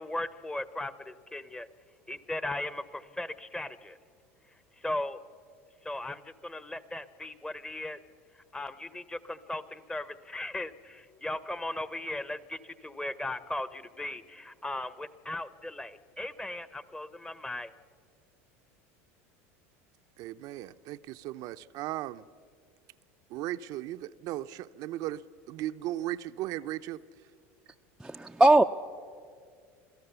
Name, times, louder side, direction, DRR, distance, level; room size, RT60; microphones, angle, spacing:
voice 1, 0.0-1.7 2.1-4.0 4.8-5.2 5.8-8.0 8.5-17.7, left 1 dB, 10° left, 15 dB, 0.8 m, -37 dB
voice 2, 20.2-22.2 23.3-27.0, right 14 dB, 55° right, 10 dB, 0.6 m, -36 dB
voice 3, 28.0-28.6, right 2 dB, 5° right, 3 dB, 0.5 m, -20 dB
27.0 x 17.0 x 6.8 m, 2.2 s
supercardioid pair, 105°, 7 cm